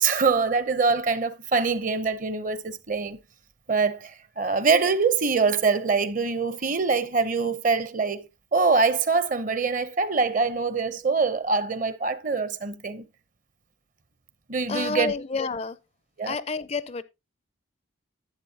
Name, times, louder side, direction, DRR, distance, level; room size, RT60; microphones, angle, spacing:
voice 1, 0.0-3.2 3.7-13.0 14.5-15.1 16.2-16.4, right 4 dB, 40° right, 0.7 m, -24 dB
voice 2, 14.7-15.8 16.2-17.0, left 4 dB, 30° left, 0.4 m, -29 dB
11.5 x 8.2 x 2.8 m
head